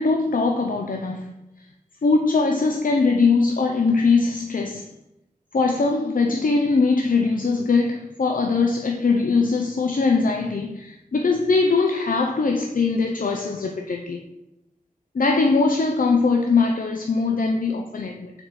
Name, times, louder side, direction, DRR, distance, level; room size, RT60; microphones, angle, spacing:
voice 1, 0.0-1.3 2.0-4.9 5.5-14.2 15.1-18.3, left 4 dB, 70° left, 3 dB, 0.6 m, -21 dB
6.2 x 4.2 x 4.7 m, 0.92 s
wide cardioid pair, 70°, 15 cm